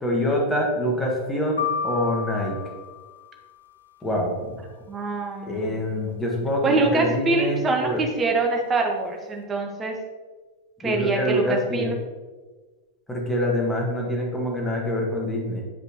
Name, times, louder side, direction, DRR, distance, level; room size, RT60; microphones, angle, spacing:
voice 1, 0.0-2.6 4.0-4.6 5.5-8.0 10.8-11.9 13.1-15.6, equal, 10° left, -2 dB, 1.7 m, -25 dB
sound 1, 1.6-3.7, left 6 dB, 75° left, 0.6 m, -31 dB
voice 2, 4.9-6.0 6.6-9.9 10.8-12.0, right 3 dB, 20° right, 2 dB, 1.1 m, -24 dB
8.7 x 5.0 x 2.9 m, 1.3 s
figure-of-eight pair, 90°, 0 cm